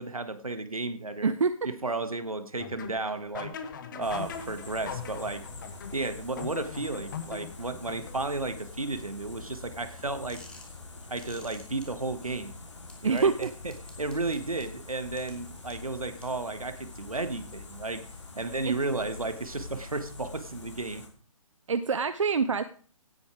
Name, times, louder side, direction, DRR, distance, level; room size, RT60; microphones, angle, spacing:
voice 1, 0.0-1.4 1.6-3.5 3.9-5.5 5.9-10.4 11.1-12.6 13.0-18.1 18.4-21.0, right 3 dB, 85° right, 11 dB, 1.7 m, -33 dB
voice 2, 1.2-1.6 13.0-13.5 18.7-18.8 21.7-22.6, right 5 dB, 65° right, 12 dB, 0.8 m, -25 dB
sound 1, 2.6-8.5, left 7 dB, 35° left, 1.4 m, -41 dB
sound 2, 4.0-21.1, left 3 dB, 60° left, 4.2 m, -45 dB
sound 3, 10.3-10.7 11.2-11.9 12.9-14.6 15.2-15.3 15.7-15.8 16.2-16.3, left 2 dB, 5° left, 2.0 m, -50 dB
17.0 x 8.6 x 4.8 m, 0.44 s
figure-of-eight pair, 140°, 18 cm